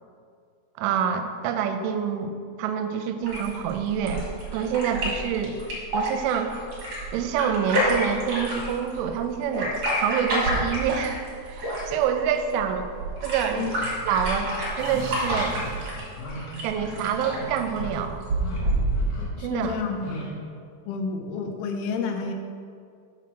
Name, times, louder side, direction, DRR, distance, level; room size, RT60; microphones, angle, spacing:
voice 1, 0.8-2.3 2.6-4.2 4.5-5.6 5.9-6.5 7.1-12.9 13.2-13.7 14.1-15.6 16.6-18.3 19.4-19.8, right 8 dB, 85° right, 7 dB, 2.9 m, -27 dB
sound 1, 3.2-19.2, right 1 dB, 45° right, 2.0 m, -29 dB
sound 2, 13.8-13.9 14.4-14.5 14.8-15.1 15.5-15.7 16.1-16.4 16.7-17.0 17.3-17.9 18.3-18.6 18.9-19.3 19.6-20.3, left 2 dB, 65° left, 2.5 m, -38 dB
sound 3, 14.8-16.6, right 4 dB, 65° right, 2.3 m, -38 dB
voice 2, 19.4-20.2 20.9-22.3, left 5 dB, 85° left, 5 dB, 2.9 m, -30 dB
6.1 x 5.7 x 6.0 m, 2.2 s
omnidirectional pair, 5.7 m